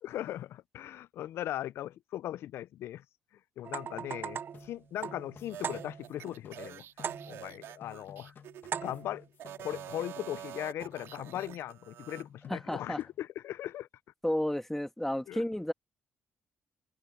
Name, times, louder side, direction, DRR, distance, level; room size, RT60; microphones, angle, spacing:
voice 1, 0.0-3.0 3.6-6.9 7.3-8.3 8.8-9.2 9.6-13.9 15.3-15.4, left 12 dB, 75° left, 0.5 m, -39 dB
sound 1, 3.6-6.3 7.0-7.6 8.7-9.3, right 7 dB, 55° right, 0.7 m, -39 dB
sound 2, 4.5-7.5 7.8-10.5 10.8-11.9 12.2-13.3, left 7 dB, 55° left, 1.8 m, -55 dB
sound 3, 5.5-8.9 9.3-12.3, right 12 dB, 80° right, 4.4 m, -47 dB
voice 2, 12.5-13.0 14.2-15.7, left 1 dB, 5° left, 2.1 m, -32 dB
cardioid pair, 75°, 4 cm